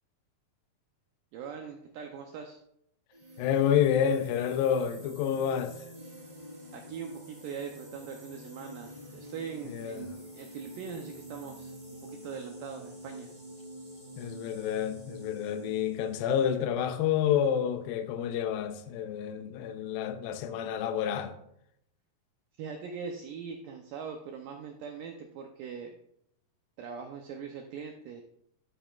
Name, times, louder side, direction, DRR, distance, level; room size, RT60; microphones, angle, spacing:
voice 1, 1.3-2.6 6.7-11.8 12.0-13.3 22.6-26.0 26.8-28.2, right 6 dB, 80° right, 1.9 m, -41 dB
sound 1, 3.1-16.5, equal, 10° right, 3.6 m, -47 dB
voice 2, 3.4-5.8 9.7-10.1 14.2-21.3, left 9 dB, 80° left, 2.2 m, -29 dB
12.0 x 8.8 x 2.4 m
omnidirectional pair, 4.7 m